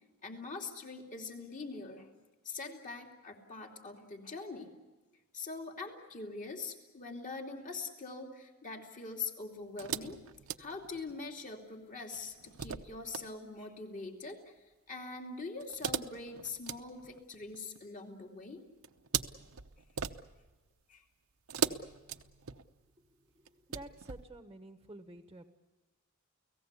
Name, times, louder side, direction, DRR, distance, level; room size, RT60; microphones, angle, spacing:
voice 1, 0.2-2.1 2.4-4.7 5.3-10.2 10.6-14.5 14.9-18.6 20.9-21.0, left 4 dB, 40° left, 2 dB, 2.8 m, -43 dB
sound 1, 9.8-11.3 12.1-13.3 15.6-17.8 18.8-20.6 21.5-22.9 23.5-24.3, right 7 dB, 70° right, 0.9 m, -39 dB
voice 2, 23.1-25.5, right 2 dB, 15° right, 8 dB, 1.1 m, -51 dB
30.0 x 17.5 x 8.3 m, 1.2 s
head